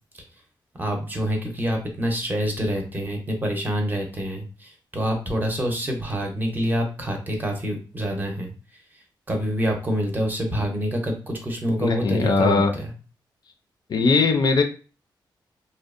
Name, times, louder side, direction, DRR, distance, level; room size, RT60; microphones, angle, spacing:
voice 1, 0.8-12.9, equal, 20° right, 2 dB, 0.6 m, -27 dB
voice 2, 11.8-12.7 13.9-14.6, left 4 dB, 55° left, 5 dB, 0.4 m, -20 dB
2.6 x 2.0 x 2.4 m, 0.36 s
wide cardioid pair, 120°, 8 cm